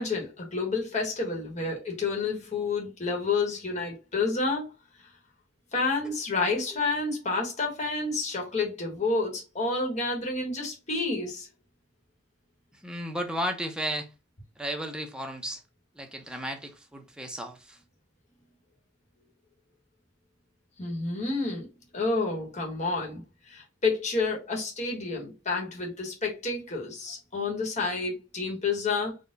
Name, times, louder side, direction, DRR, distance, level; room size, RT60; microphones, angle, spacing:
voice 1, 0.0-4.7 5.7-11.5 20.8-21.7 21.9-29.2, left 3 dB, 40° left, 1.3 m, -29 dB
voice 2, 12.7-14.1 14.6-15.6 15.9-17.8, equal, 5° right, 0.7 m, -34 dB
4.2 x 2.3 x 3.8 m
head